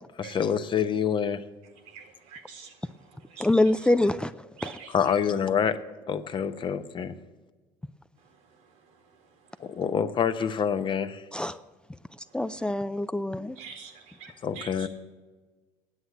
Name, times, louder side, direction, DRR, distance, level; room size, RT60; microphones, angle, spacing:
voice 1, 0.2-1.4 4.9-5.8 6.1-7.1 9.6-11.2 14.4-14.9, left 7 dB, 40° left, 0.8 m, -26 dB
voice 2, 1.6-3.9 4.6-5.2 8.2-9.9 10.4-10.5 12.2-12.7 13.6-14.9, right 6 dB, 80° right, 2.1 m, -48 dB
voice 3, 3.4-4.5 11.3-11.6 12.3-13.6, left 1 dB, 5° left, 0.4 m, -25 dB
9.7 x 8.0 x 8.5 m
supercardioid pair, 85°, 12 cm